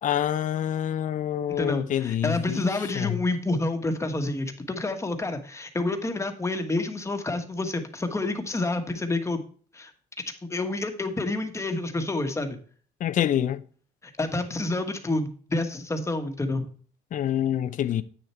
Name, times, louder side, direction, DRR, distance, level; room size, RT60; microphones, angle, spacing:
voice 1, 0.0-2.7 3.0-3.1 13.0-13.6 17.1-18.0, left 10 dB, 50° left, 0.6 m, -26 dB
voice 2, 1.5-9.4 9.7-9.9 10.5-12.6 14.0-16.7, left 2 dB, 15° left, 1.4 m, -28 dB
8.9 x 6.6 x 4.4 m
cardioid pair, 110°, 17 cm